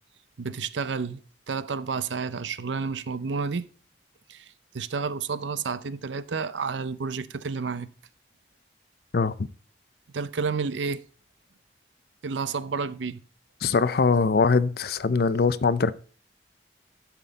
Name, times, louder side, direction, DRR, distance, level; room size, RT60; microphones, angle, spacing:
voice 1, 0.4-1.2 1.5-3.7 4.3-4.5 4.7-7.9 10.1-11.0 12.2-13.2, right 5 dB, 90° right, 0.6 m, -30 dB
voice 2, 9.1-9.5 13.6-15.9, left 4 dB, 60° left, 0.5 m, -22 dB
11.0 x 6.0 x 4.0 m
head